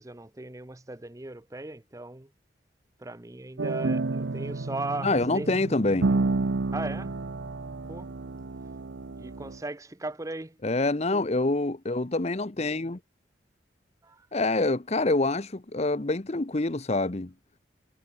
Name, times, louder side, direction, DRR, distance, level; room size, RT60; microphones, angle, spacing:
voice 1, 0.0-2.3 3.0-5.5 6.1-6.2 6.7-7.2 7.9-8.1 9.2-10.6 14.0-14.3, right 2 dB, 20° right, 0.8 m, -37 dB
sound 1, 3.6-9.6, right 3 dB, 85° right, 0.8 m, -30 dB
voice 2, 5.0-6.1 10.6-13.0 14.3-17.3, left 2 dB, 35° left, 0.9 m, -26 dB
head